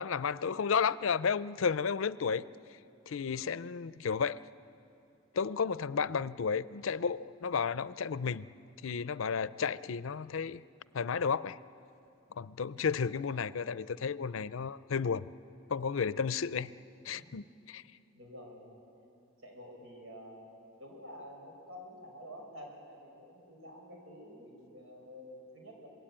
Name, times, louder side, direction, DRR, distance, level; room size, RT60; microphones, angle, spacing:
voice 1, 0.0-2.4 3.1-4.4 5.3-8.5 8.8-10.6 10.9-11.6 12.4-15.2 15.7-16.7 17.0-17.8, left 6 dB, 75° left, 16 dB, 0.5 m, -32 dB
voice 2, 18.1-18.8 19.4-25.9, equal, 85° right, 1 dB, 6.5 m, -49 dB
26.0 x 21.5 x 8.9 m, 2.7 s
head